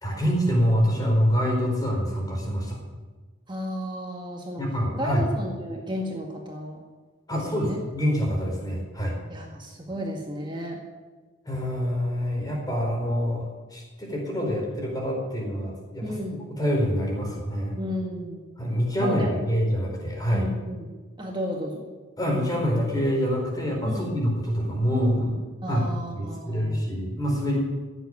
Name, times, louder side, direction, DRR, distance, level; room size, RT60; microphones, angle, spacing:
voice 1, 0.0-2.8 4.6-5.2 7.3-9.2 11.5-17.8 18.6-20.5 22.2-25.4 25.7-27.6, equal, 20° left, -1 dB, 4.5 m, -26 dB
voice 2, 3.5-4.6 4.9-6.8 7.3-7.8 9.3-10.8 16.0-16.4 17.8-18.4 19.0-19.4 20.3-21.9 23.9-24.1 25.6-26.8, equal, 20° right, 0 dB, 1.8 m, -33 dB
16.5 x 8.1 x 9.3 m, 1.4 s
head